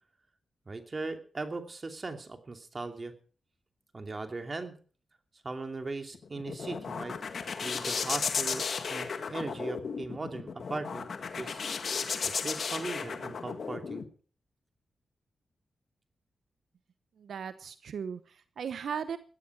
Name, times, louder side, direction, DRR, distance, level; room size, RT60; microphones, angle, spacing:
voice 1, 0.7-3.1 3.9-4.8 5.4-7.2 7.6-11.1 11.4-11.6 12.2-14.0, right 3 dB, 40° right, 5 dB, 2.7 m, -38 dB
sound 1, 6.1-14.1, left 5 dB, 65° left, 1.7 m, -34 dB
voice 2, 17.2-19.2, right 7 dB, 75° right, 12 dB, 0.9 m, -37 dB
16.5 x 13.0 x 4.7 m, 0.42 s
supercardioid pair, 45°, 0 cm